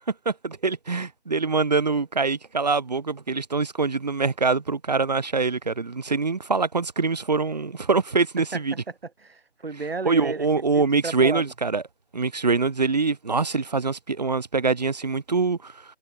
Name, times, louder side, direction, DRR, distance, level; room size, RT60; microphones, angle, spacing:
voice 1, 0.3-8.7 10.0-11.8 12.1-15.8, right 4 dB, 35° right, 2.2 m, -24 dB
voice 2, 9.0-10.5 10.7-11.5, right 4 dB, 55° right, 4.1 m, -33 dB
figure-of-eight pair, 175°, 36 cm